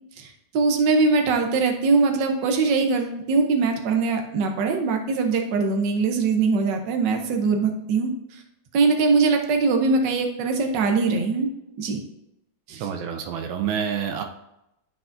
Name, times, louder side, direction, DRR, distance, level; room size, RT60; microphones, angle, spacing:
voice 1, 0.2-8.4 8.7-11.5 11.8-12.0 12.7-12.9, right 4 dB, 70° right, 4 dB, 1.5 m, -22 dB
voice 2, 12.8-14.2, right 7 dB, 85° right, 5 dB, 1.5 m, -28 dB
12.5 x 4.8 x 2.6 m, 0.86 s
omnidirectional pair, 2.1 m